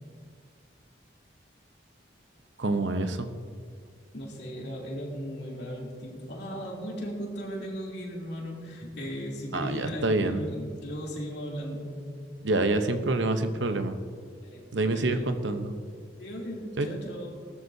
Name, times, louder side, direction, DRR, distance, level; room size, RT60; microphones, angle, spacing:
voice 1, 2.6-3.3 9.5-10.4 12.4-13.9 14.7-15.8 16.8-16.9, right 2 dB, 70° right, 8 dB, 0.8 m, -27 dB
voice 2, 4.1-12.0 14.4-15.5 16.2-17.5, equal, 60° left, -3 dB, 3.0 m, -37 dB
19.0 x 13.0 x 2.8 m, 2.1 s
head